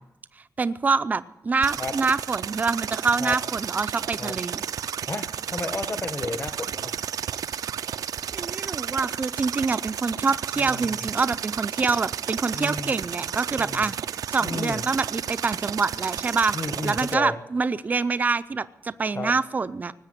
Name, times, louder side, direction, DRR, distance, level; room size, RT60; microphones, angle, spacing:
voice 1, 0.6-4.6 8.3-14.0 14.3-16.6 16.8-19.9, right 4 dB, 25° right, 13 dB, 0.5 m, -26 dB
sound 1, 1.6-17.1, right 9 dB, 80° right, 0.5 m, -32 dB
voice 2, 5.1-6.9 10.5-11.0 12.5-12.9 13.6-13.9 14.4-14.8 16.5-17.4 19.1-19.3, left 3 dB, 30° left, 9 dB, 1.2 m, -32 dB
18.5 x 8.6 x 9.1 m, 0.94 s
wide cardioid pair, 165°, 6 cm